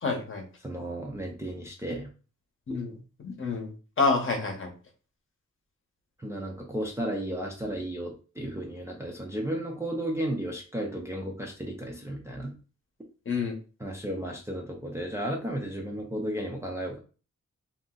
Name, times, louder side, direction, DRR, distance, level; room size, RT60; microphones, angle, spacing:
voice 1, 0.0-0.4 2.7-2.9 3.2-4.7 13.3-13.5, left 4 dB, 45° left, 2 dB, 0.8 m, -28 dB
voice 2, 0.6-2.1 6.2-12.6 13.8-17.0, right 1 dB, 10° right, -1 dB, 0.4 m, -34 dB
2.5 x 2.1 x 3.7 m, 0.35 s
wide cardioid pair, 160°, 30 cm